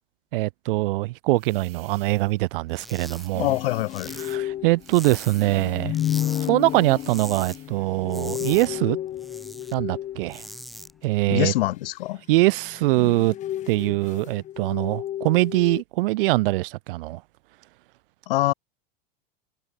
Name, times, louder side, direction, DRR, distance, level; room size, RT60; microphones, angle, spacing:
voice 1, 0.3-3.5 4.2-5.9 6.5-9.0 9.7-10.5 11.0-11.5 12.3-13.3 13.7-17.2, right 20 dB, 65° right, 1.1 m, -23 dB
sound 1, 1.3-2.5 3.1-4.2 4.8-6.0 6.6-7.8, right 14 dB, 85° right, 6.3 m, -51 dB
sound 2, 2.7-3.3 3.6-5.6 5.9-6.5 6.8-7.6 7.9-9.7 10.1-10.9, equal, ahead, 1.4 m, -41 dB
sound 3, 3.3-10.6 12.5-15.8, left 12 dB, 25° left, 1.3 m, -32 dB
voice 2, 3.4-4.1 11.3-12.2 18.3-18.5, left 17 dB, 75° left, 1.3 m, -24 dB
supercardioid pair, 150°, 29 cm